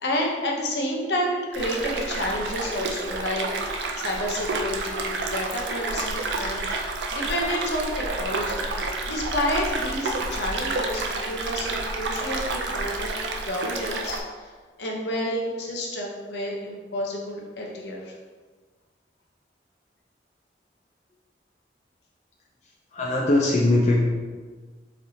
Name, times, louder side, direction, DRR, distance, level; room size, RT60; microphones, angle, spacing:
voice 1, 0.0-3.5 4.0-8.7 9.0-14.5 14.8-18.1, left 1 dB, 75° left, -1 dB, 0.7 m, -30 dB
sound 1, 1.5-14.2, right 2 dB, 85° right, 0.4 m, -29 dB
voice 2, 22.9-24.0, left 2 dB, 40° left, -3 dB, 0.4 m, -20 dB
4.1 x 3.3 x 2.7 m, 1.4 s
head